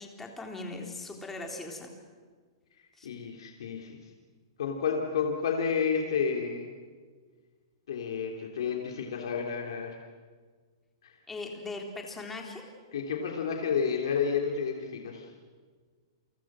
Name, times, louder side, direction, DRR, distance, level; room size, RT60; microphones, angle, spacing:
voice 1, 0.0-1.9 3.0-3.1 11.3-12.6, left 3 dB, 10° left, 1 dB, 3.7 m, -39 dB
voice 2, 3.0-4.0 4.6-6.7 7.9-9.9 11.0-11.1 12.9-15.3, left 6 dB, 75° left, 1 dB, 3.2 m, -30 dB
29.5 x 24.0 x 6.3 m, 1.5 s
hypercardioid pair, 150°, 3 cm